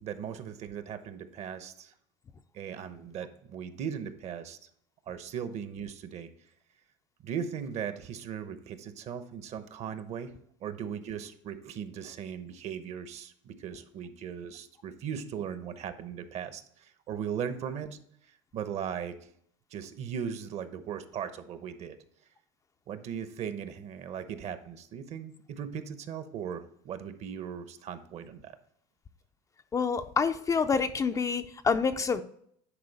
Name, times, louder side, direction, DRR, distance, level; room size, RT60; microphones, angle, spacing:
voice 1, 0.0-1.9 2.5-4.6 5.1-6.3 7.2-10.3 10.6-18.0 18.5-19.2 19.7-22.0 22.9-28.6, right 8 dB, 50° right, 11 dB, 0.9 m, -38 dB
voice 2, 29.7-32.2, left 5 dB, 20° left, 9 dB, 0.4 m, -27 dB
10.5 x 4.3 x 4.1 m, 0.68 s
supercardioid pair, 120°, 15 cm